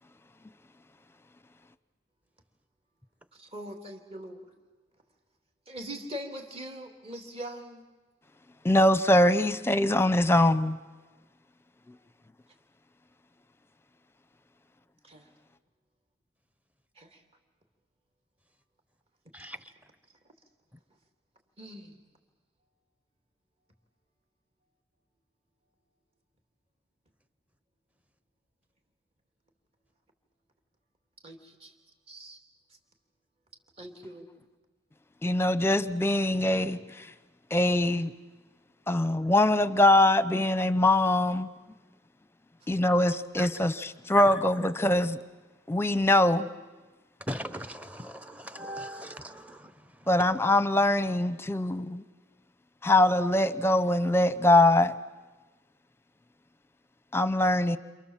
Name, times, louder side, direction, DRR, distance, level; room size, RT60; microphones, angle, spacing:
voice 1, 3.3-4.5 5.7-7.8 15.0-15.2 17.0-17.2 21.6-22.0 31.2-31.7 32.1-32.4 33.8-34.3, equal, 35° right, 3.1 m, -42 dB
voice 2, 8.6-10.8 35.2-37.1 37.5-38.1 38.9-41.5 42.7-45.2 45.7-46.5 50.1-52.0 52.8-54.9 57.1-57.8, left 1 dB, 15° left, 0.9 m, -23 dB
voice 3, 47.3-49.7, equal, 10° right, 1.0 m, -39 dB
29.0 x 27.5 x 7.5 m
head